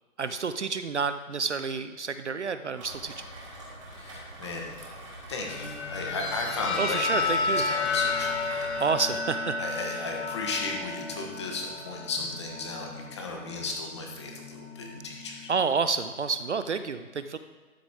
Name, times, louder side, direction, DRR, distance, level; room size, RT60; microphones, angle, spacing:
voice 1, 0.2-3.1 6.8-7.6 8.8-9.5 15.5-17.4, right 5 dB, 55° right, 11 dB, 0.6 m, -29 dB
Rain, 2.8-8.9, right 1 dB, 20° right, 2.1 m, -44 dB
voice 2, 3.9-4.6 5.3-8.9 9.6-15.5, left 3 dB, 20° left, 1 dB, 1.2 m, -35 dB
sound 1, 5.5-15.4, left 4 dB, 50° left, 1.4 m, -32 dB
12.5 x 9.1 x 3.5 m, 1.3 s
hypercardioid pair, 165°, 43 cm